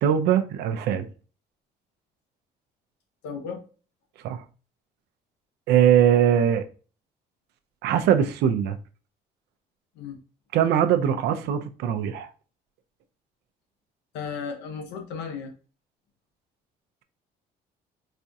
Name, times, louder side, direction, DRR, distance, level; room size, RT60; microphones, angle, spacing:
voice 1, 0.0-1.1 4.2-4.4 5.7-6.6 7.8-8.8 10.5-12.3, right 9 dB, 80° right, 0.5 m, -21 dB
voice 2, 3.2-3.6 9.9-10.2 14.1-15.5, left 6 dB, 90° left, 0.9 m, -34 dB
4.2 x 2.3 x 2.6 m
cardioid pair, 110°, 17 cm